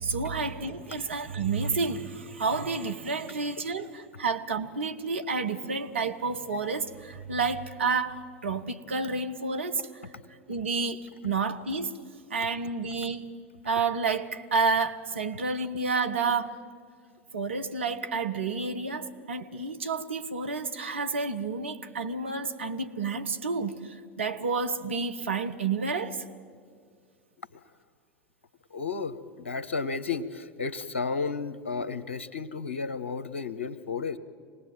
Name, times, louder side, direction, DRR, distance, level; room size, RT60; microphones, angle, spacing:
voice 1, 0.0-9.9 10.5-12.0 12.3-13.2 13.6-16.6 17.3-26.2, right 4 dB, 75° right, 1.2 m, -30 dB
voice 2, 28.7-34.2, left 4 dB, 70° left, 1.0 m, -33 dB
26.0 x 19.0 x 9.2 m
figure-of-eight pair, 80°, 7 cm